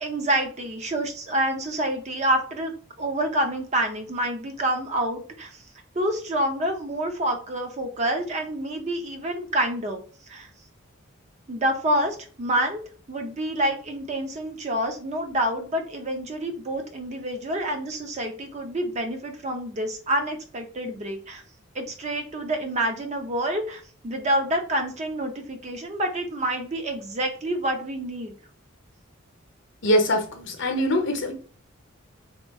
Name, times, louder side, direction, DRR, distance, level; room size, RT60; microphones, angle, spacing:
voice 1, 0.0-5.5 5.9-10.0 10.3-10.5 11.5-12.8 13.1-21.4 21.7-28.3, right 1 dB, 35° right, 0.6 m, -27 dB
voice 2, 29.8-31.3, equal, 65° left, 0.7 m, -23 dB
2.9 x 2.3 x 3.5 m
head